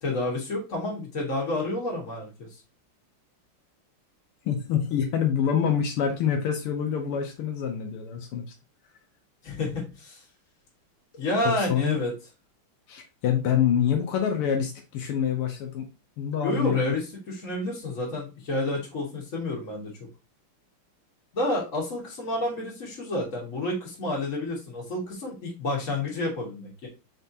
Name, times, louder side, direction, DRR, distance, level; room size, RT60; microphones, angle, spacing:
voice 1, 0.0-2.3 9.4-10.2 11.1-12.1 16.4-19.9 21.3-26.9, left 2 dB, 40° left, -3 dB, 1.9 m, -29 dB
voice 2, 4.5-8.5 11.5-12.0 12.9-15.9 16.2-17.0, left 8 dB, 80° left, 3 dB, 1.7 m, -26 dB
5.0 x 3.4 x 2.7 m, 0.28 s
omnidirectional pair, 2.4 m